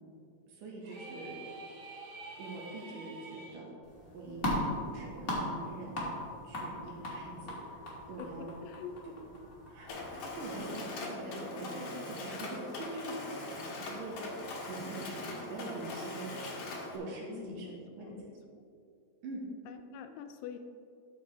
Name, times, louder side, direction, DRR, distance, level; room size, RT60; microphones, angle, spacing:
voice 1, 0.5-1.4 2.4-3.7 4.1-6.0 6.4-7.8 8.1-8.5 9.6-13.1 13.4-14.2 14.7-16.4 16.9-18.1 19.2-19.4, right 2 dB, 70° right, -2 dB, 2.9 m, -43 dB
sound 1, 0.8-3.6, right 3 dB, 90° right, 3.5 m, -47 dB
sound 2, 3.8-10.6, left 1 dB, 35° left, 1.5 m, -39 dB
voice 2, 8.2-8.9 12.7-12.9 17.3-18.4 19.7-20.6, left 8 dB, 80° left, 6 dB, 2.2 m, -46 dB
Mechanisms, 9.9-17.0, left 2 dB, 60° left, 1.7 m, -41 dB
12.5 x 6.5 x 3.3 m, 2.5 s
omnidirectional pair, 4.2 m